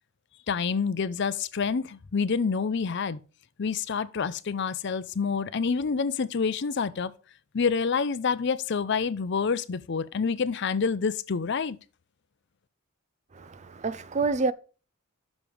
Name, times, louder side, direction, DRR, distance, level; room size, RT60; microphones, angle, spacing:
voice 1, 0.5-3.2 3.6-7.1 7.5-11.8, left 5 dB, 55° left, 0.5 m, -27 dB
voice 2, 13.3-14.5, right 4 dB, 35° right, 0.5 m, -28 dB
6.2 x 5.1 x 6.9 m
head